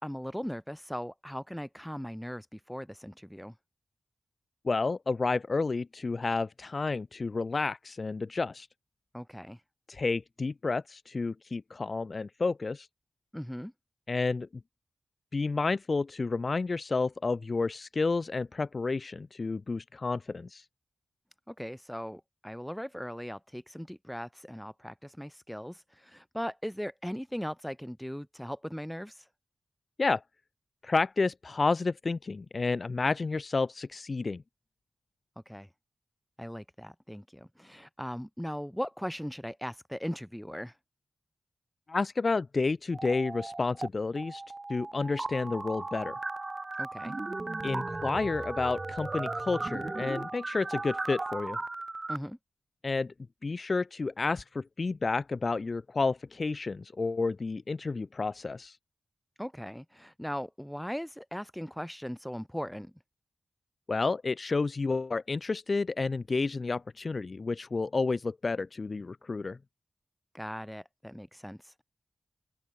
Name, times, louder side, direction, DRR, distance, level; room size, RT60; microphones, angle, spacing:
voice 1, 0.0-3.5 9.1-9.6 13.3-13.7 21.5-29.2 35.5-35.7 36.4-40.7 46.8-47.2 52.1-52.4 59.4-62.9 70.3-71.8, equal, 5° left, 6.0 m, -39 dB
voice 2, 4.6-8.7 9.9-12.9 14.1-14.5 15.3-20.6 30.0-30.2 30.8-34.4 41.9-44.4 44.7-46.2 47.6-51.6 52.8-53.1 53.4-58.8 63.9-69.6, left 3 dB, 50° left, 0.6 m, -30 dB
sound 1, 42.9-43.9 44.2-52.2, right 2 dB, 35° right, 4.6 m, -36 dB
open air
cardioid pair, 60°, 0 cm